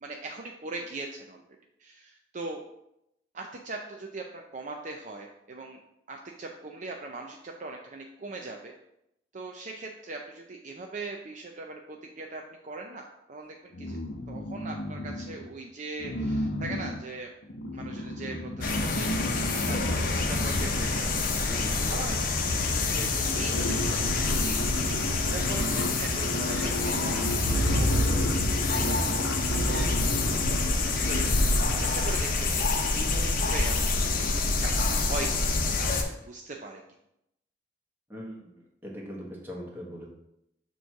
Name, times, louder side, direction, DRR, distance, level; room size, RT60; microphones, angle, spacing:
voice 1, 0.0-1.4 1.8-2.6 3.3-5.8 6.1-8.7 9.3-14.0 14.3-17.3 17.7-21.6 21.9-24.1 24.4-27.2 27.4-28.0 28.6-29.9 30.9-31.4 31.8-36.8, right 3 dB, 45° right, 2 dB, 0.5 m, -40 dB
sound 1, 13.7-15.5 16.0-21.7 22.6-22.7 23.0-31.8, left 1 dB, 85° left, 0.8 m, -34 dB
sound 2, 18.6-36.0, left 3 dB, 50° left, 0.8 m, -27 dB
voice 2, 21.5-21.8 38.1-38.5 38.8-40.0, equal, 10° right, -4 dB, 1.6 m, -40 dB
sound 3, 22.4-32.2, equal, 25° left, 1.8 m, -32 dB
6.8 x 3.1 x 5.7 m, 0.82 s
head